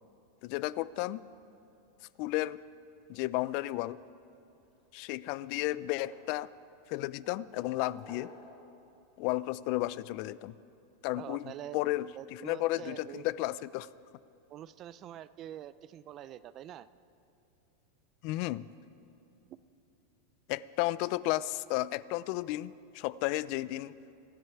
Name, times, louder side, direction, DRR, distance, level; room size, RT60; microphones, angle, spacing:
voice 1, 0.4-1.2 2.2-2.6 3.1-4.0 4.9-6.5 6.9-8.3 9.2-10.5 11.0-13.9 18.2-18.7 20.5-24.0, left 17 dB, 45° left, 19 dB, 0.3 m, -33 dB
sound 1, 4.6-5.3 5.6-6.7 7.2-8.9 10.1-10.2 11.7-11.8 12.1-12.2, left 2 dB, 25° left, 3.3 m, -54 dB
voice 2, 11.2-11.8 12.2-13.3 14.5-16.9, right 12 dB, 30° right, 16 dB, 0.4 m, -45 dB
25.5 x 9.3 x 4.6 m, 2.8 s
supercardioid pair, 155°, 0 cm